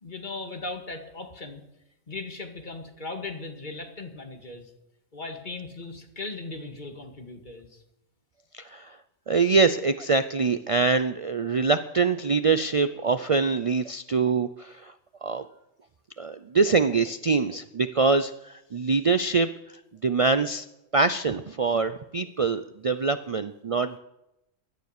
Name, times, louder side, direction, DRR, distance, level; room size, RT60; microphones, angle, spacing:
voice 1, 0.0-1.6 2.1-4.7 5.1-7.8, left 3 dB, 35° left, 4 dB, 1.9 m, -38 dB
voice 2, 8.5-9.0 9.3-14.9 15.2-15.4 16.2-19.5 20.0-20.7 20.9-24.0, right 4 dB, 60° right, 12 dB, 0.3 m, -24 dB
17.0 x 12.0 x 6.7 m, 0.88 s
omnidirectional pair, 1.4 m